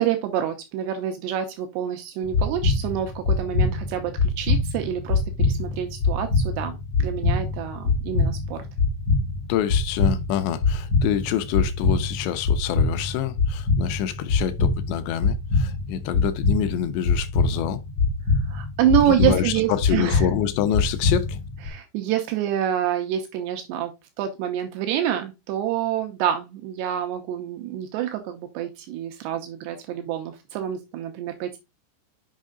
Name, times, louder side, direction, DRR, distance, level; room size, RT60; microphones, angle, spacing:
voice 1, 0.0-8.7 18.5-20.3 21.7-23.9 24.2-31.6, right 10 dB, 80° right, 3.0 m, -27 dB
sound 1, 2.2-21.7, left 4 dB, 50° left, 2.1 m, -24 dB
voice 2, 9.5-17.8 19.1-21.4, left 10 dB, 85° left, 2.9 m, -27 dB
7.3 x 5.5 x 3.7 m
omnidirectional pair, 4.9 m